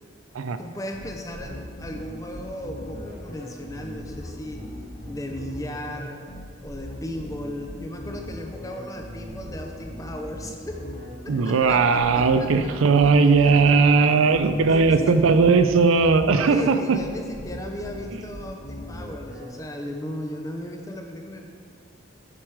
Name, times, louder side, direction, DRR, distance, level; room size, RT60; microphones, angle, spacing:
voice 1, 0.6-4.6 5.0-6.2 6.6-10.7 11.2-12.7 13.0-13.1 13.4-13.7 14.7-15.2 16.4-21.5, left 1 dB, 15° left, 3 dB, 0.5 m, -36 dB
sound 1, 0.9-19.4, left 1 dB, 45° left, 1.4 m, -39 dB
voice 2, 11.3-17.0, right 4 dB, 90° right, 10 dB, 0.4 m, -18 dB
7.4 x 4.7 x 4.7 m, 2.1 s
head